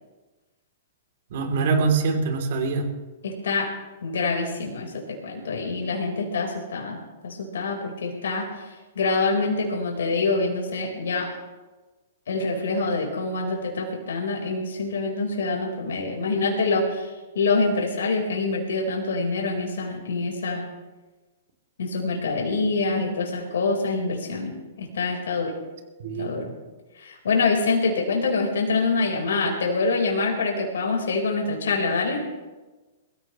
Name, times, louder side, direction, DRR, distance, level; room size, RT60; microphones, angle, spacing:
voice 1, 1.3-2.8 26.0-26.4, right 4 dB, 65° right, 4 dB, 3.1 m, -24 dB
voice 2, 3.2-3.7 4.0-7.0 7.2-8.5 8.9-11.3 12.3-17.1 17.3-20.6 21.8-25.5 26.2-26.5 27.0-32.2, left 3 dB, 80° left, 0 dB, 4.4 m, -25 dB
22.5 x 16.0 x 3.2 m, 1.2 s
hypercardioid pair, 130°, 0 cm